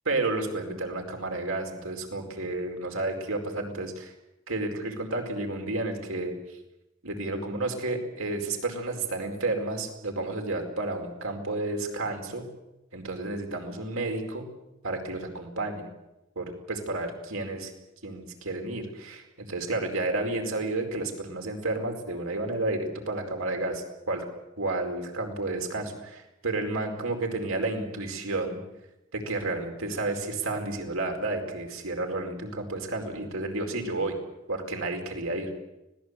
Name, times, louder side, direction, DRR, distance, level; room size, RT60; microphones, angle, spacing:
voice 1, 0.0-4.1 4.5-6.3 7.0-12.5 12.9-14.5 14.8-15.9 16.3-17.7 18.0-24.2 24.6-28.6 29.1-34.2 34.5-35.5, right 2 dB, 85° right, 3 dB, 4.8 m, -31 dB
25.0 x 18.5 x 8.3 m, 0.93 s
head